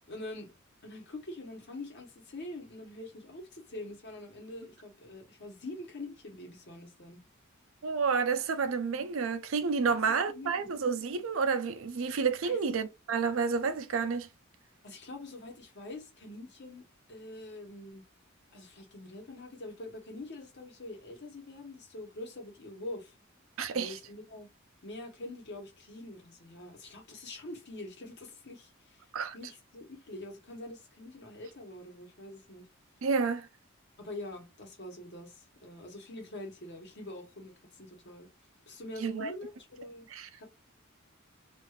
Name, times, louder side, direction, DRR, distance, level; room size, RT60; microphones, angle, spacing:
voice 1, 0.1-0.5 0.8-7.2 9.9-10.7 12.4-12.6 14.8-18.0 18.5-23.2 23.7-24.5 24.8-29.0 29.3-32.7 34.0-38.3 38.7-40.1 40.4-40.5, left 2 dB, 55° left, 1.1 m, -45 dB
voice 2, 7.8-14.3 23.6-24.0 29.1-29.4 33.0-33.5 39.0-39.3 40.1-40.3, right 5 dB, 75° right, 0.5 m, -30 dB
2.5 x 2.4 x 3.1 m
head